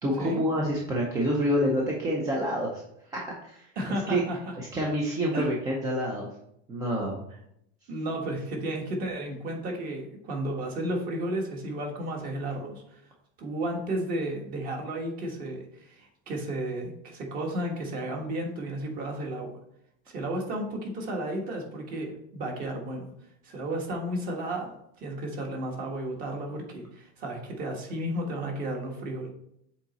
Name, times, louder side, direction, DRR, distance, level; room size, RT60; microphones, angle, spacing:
voice 1, 0.0-2.8 3.1-3.7 4.1-4.2 4.6-6.3 6.7-7.2, equal, 10° right, -2 dB, 0.5 m, -27 dB
voice 2, 3.8-4.5 5.3-5.5 7.9-13.0 13.4-19.5 20.1-23.1 23.4-29.3, right 1 dB, 30° right, 1 dB, 1.3 m, -33 dB
7.2 x 4.0 x 4.0 m, 0.74 s
supercardioid pair, 175°, 29 cm